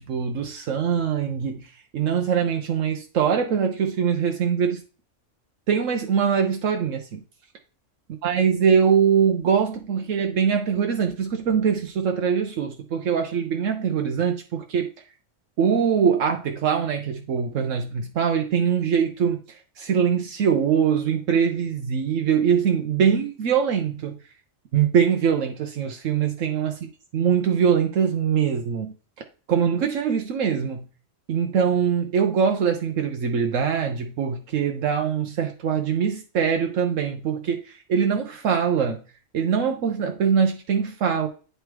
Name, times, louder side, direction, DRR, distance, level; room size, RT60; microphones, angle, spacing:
voice 1, 0.1-1.7 1.9-4.8 5.7-7.2 8.2-14.9 15.6-24.1 24.7-28.9 29.5-30.9 31.3-39.0 39.3-41.3, right 7 dB, 75° right, 1.1 m, -23 dB
9.1 x 3.4 x 4.5 m
omnidirectional pair, 1.4 m